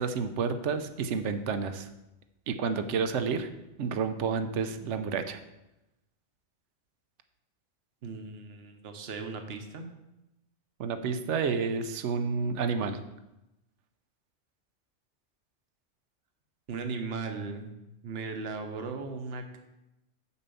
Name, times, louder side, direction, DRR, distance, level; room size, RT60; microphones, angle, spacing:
voice 1, 0.0-1.9 2.5-3.5 3.8-5.4 10.8-13.0, right 5 dB, 80° right, 9 dB, 1.0 m, -30 dB
voice 2, 8.0-9.9 16.7-17.8 18.0-19.6, right 4 dB, 60° right, 5 dB, 1.1 m, -37 dB
7.0 x 5.3 x 6.9 m, 0.95 s
omnidirectional pair, 1.2 m